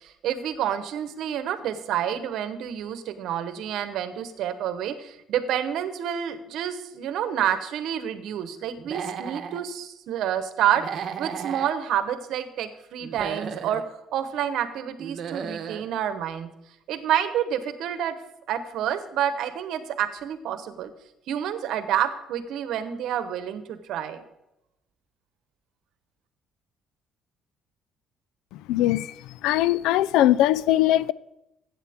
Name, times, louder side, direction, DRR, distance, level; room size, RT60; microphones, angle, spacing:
voice 1, 0.0-13.8 14.1-16.5 16.9-18.1 18.5-20.9 21.3-24.2, right 10 dB, 75° right, 1.0 m, -28 dB
Human voice / Animal, 8.8-9.6 10.7-11.7 13.0-13.8 15.0-15.8, right 7 dB, 60° right, 1.0 m, -34 dB
voice 2, 28.7-29.1 29.4-31.1, left 14 dB, 85° left, 0.3 m, -20 dB
14.0 x 8.4 x 3.6 m
cardioid pair, 95°, 0 cm